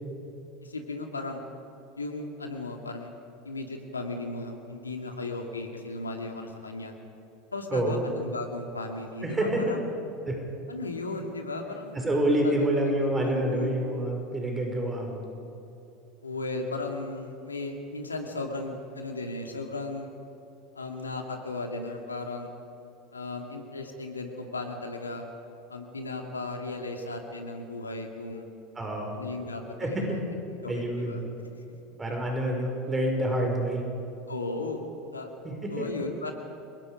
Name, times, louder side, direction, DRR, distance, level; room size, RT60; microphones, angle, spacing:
voice 1, 0.6-1.4 2.0-3.1 3.4-6.9 7.5-9.8 10.7-12.0 12.4-12.5 12.8-12.9 13.2-13.8 16.2-20.1 20.8-22.5 23.1-25.2 25.7-28.5 29.1-30.2 30.5-31.2 34.3-35.3 35.7-36.3, left 2 dB, 90° left, 3 dB, 2.2 m, -36 dB
voice 2, 7.7-8.0 9.2-9.7 10.3-10.4 11.9-15.3 28.8-29.1 29.8-30.2 30.7-31.2 32.0-33.8 35.4-35.9, right 1 dB, 20° right, 1 dB, 5.8 m, -27 dB
29.5 x 22.5 x 5.2 m, 2.8 s
figure-of-eight pair, 80°, 0 cm